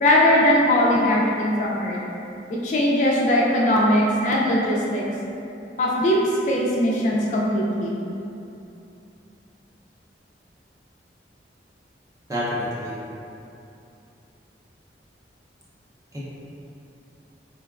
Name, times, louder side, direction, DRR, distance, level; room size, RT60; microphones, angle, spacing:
voice 1, 0.0-2.0 2.5-5.0 5.8-6.2 6.5-8.0, left 1 dB, 45° left, -4 dB, 0.3 m, -20 dB
voice 2, 12.3-13.0 16.1-16.2, equal, 20° right, -8 dB, 0.5 m, -28 dB
3.8 x 2.1 x 2.3 m, 2.8 s
head